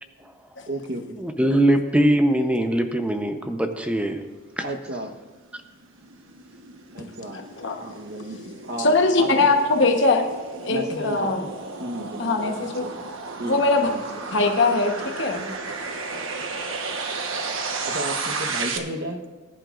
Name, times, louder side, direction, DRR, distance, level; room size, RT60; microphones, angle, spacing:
voice 1, 0.7-1.2 4.6-5.1 6.9-7.4 7.8-9.5 10.7-11.4 11.8-13.1 13.4-14.0 17.9-19.3, right 1 dB, 50° right, 3 dB, 1.1 m, -33 dB
voice 2, 1.2-4.2 4.6-4.7, right 1 dB, 5° right, 5 dB, 0.7 m, -21 dB
sound 1, 5.6-18.8, right 4 dB, 65° right, 1.2 m, -33 dB
voice 3, 8.8-10.3 10.6-11.4 12.2-12.8 13.4-13.9 14.3-15.5, left 3 dB, 55° left, 3 dB, 1.1 m, -21 dB
20.0 x 11.0 x 2.5 m, 1.3 s
head